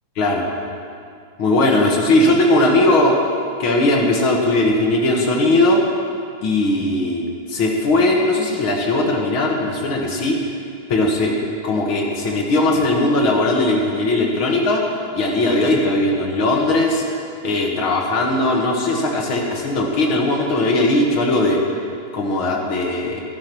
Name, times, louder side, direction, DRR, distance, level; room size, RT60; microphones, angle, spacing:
voice 1, 0.2-0.5 1.4-3.2 3.6-5.8 6.4-10.4 10.9-11.4 11.6-14.9 15.1-17.0 17.4-21.6 22.1-23.2, left 2 dB, 50° left, 0 dB, 1.9 m, -18 dB
15.0 x 10.5 x 6.1 m, 2.4 s
omnidirectional pair, 3.5 m